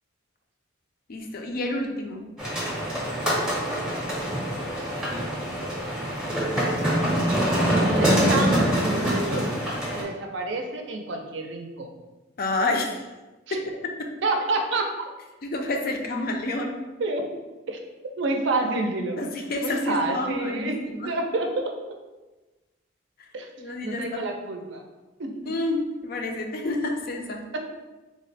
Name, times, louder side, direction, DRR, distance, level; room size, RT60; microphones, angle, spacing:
voice 1, 1.1-2.2 12.4-13.0 13.5-13.6 14.0-14.1 15.4-16.7 19.2-21.1 23.6-24.2 25.5-27.4, left 2 dB, 50° left, 3 dB, 0.4 m, -29 dB
sound 1, 2.4-10.0, equal, 5° right, 0.6 m, -24 dB
voice 2, 3.2-3.6 7.8-9.5 9.9-11.9 13.5-13.6 14.2-14.8 17.0-17.2 17.7-17.8 18.2-19.2 19.6-20.8 21.1-21.7 23.3-23.5 23.8-24.8 25.2-25.3 27.5-27.6, right 2 dB, 65° right, 3 dB, 0.5 m, -28 dB
3.6 x 2.1 x 4.0 m, 1.2 s
head